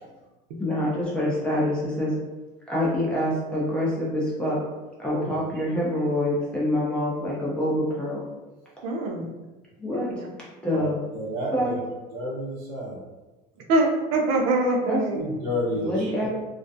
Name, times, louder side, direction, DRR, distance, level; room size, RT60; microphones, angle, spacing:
voice 1, 0.6-2.1 2.7-4.6 5.0-8.2 9.8-10.1 10.6-11.0 11.5-11.8 14.9-15.0 15.8-16.3, left 1 dB, 5° left, -6 dB, 0.4 m, -26 dB
voice 2, 8.8-9.3 9.9-10.3 13.7-15.3, right 2 dB, 80° right, 0 dB, 0.5 m, -24 dB
voice 3, 10.7-11.8 12.1-13.0 15.1-16.3, left 1 dB, 55° right, -5 dB, 0.8 m, -30 dB
2.3 x 2.1 x 2.6 m, 1.1 s
cardioid pair, 180°, 19 cm